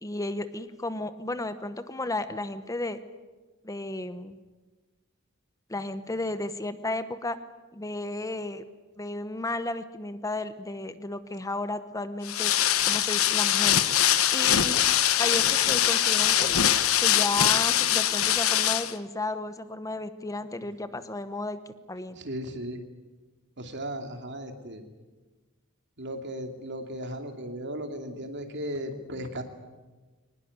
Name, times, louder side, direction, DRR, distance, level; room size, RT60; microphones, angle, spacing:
voice 1, 0.0-3.0 3.6-4.4 5.7-7.4 7.7-8.6 9.0-12.5 12.9-13.8 14.3-14.8 15.2-16.7 17.0-21.6 21.9-22.2, left 2 dB, 15° left, 12 dB, 0.9 m, -33 dB
sound 1, 12.2-18.9, left 11 dB, 85° left, 1.2 m, -23 dB
voice 2, 22.2-22.8 23.6-24.8 26.0-29.4, equal, 60° right, 6 dB, 2.6 m, -36 dB
23.0 x 20.0 x 9.5 m, 1.3 s
head